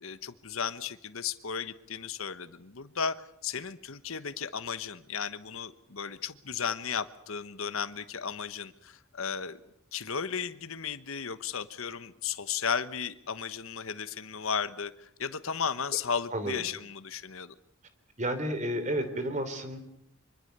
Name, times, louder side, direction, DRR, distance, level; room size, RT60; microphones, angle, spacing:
voice 1, 0.0-9.6 9.9-17.5, left 6 dB, 75° left, 12 dB, 1.2 m, -35 dB
voice 2, 16.3-16.6 18.2-19.8, right 1 dB, 35° right, 9 dB, 3.3 m, -31 dB
24.5 x 24.5 x 6.8 m, 0.73 s
head